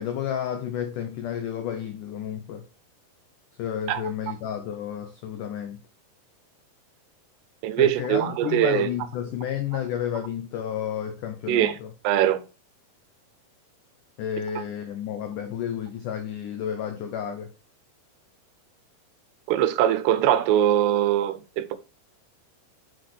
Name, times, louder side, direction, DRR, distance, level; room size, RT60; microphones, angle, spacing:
voice 1, 0.0-2.6 3.6-5.8 7.8-11.9 14.2-17.5, left 9 dB, 90° left, 1.8 m, -31 dB
voice 2, 7.6-8.9 11.5-11.8 12.0-12.4 19.5-21.8, right 11 dB, 85° right, 2.8 m, -22 dB
7.8 x 6.1 x 3.3 m
omnidirectional pair, 4.8 m